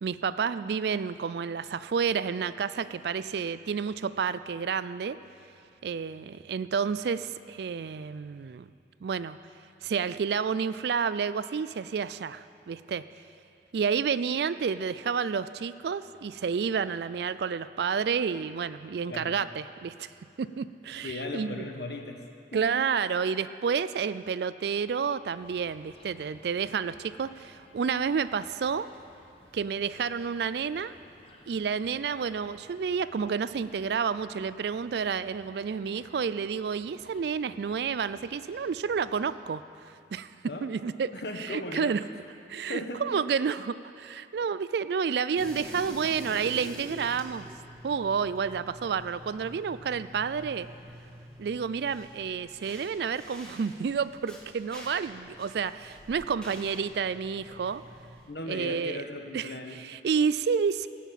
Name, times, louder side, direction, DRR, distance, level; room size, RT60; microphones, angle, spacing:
voice 1, 0.0-5.2 5.8-8.7 9.0-9.4 9.8-13.0 13.7-20.1 20.4-21.6 22.5-28.9 29.5-30.9 31.5-39.6 40.1-40.3 40.6-41.1 41.5-42.0 42.5-47.5 47.8-50.7 51.4-57.8 58.5-59.0 59.3-59.5 59.8-60.9, right 6 dB, 65° right, 15 dB, 0.3 m, -30 dB
voice 2, 21.0-22.2 22.5-22.6 40.4-40.7 41.1-41.9 42.7-43.0 58.3-59.8, left 2 dB, 65° left, 4 dB, 1.1 m, -37 dB
sound 1, 25.3-39.4, left 1 dB, 30° left, 0.9 m, -58 dB
sound 2, 45.4-58.3, equal, 5° left, 1.4 m, -46 dB
17.0 x 5.8 x 7.4 m, 2.5 s
head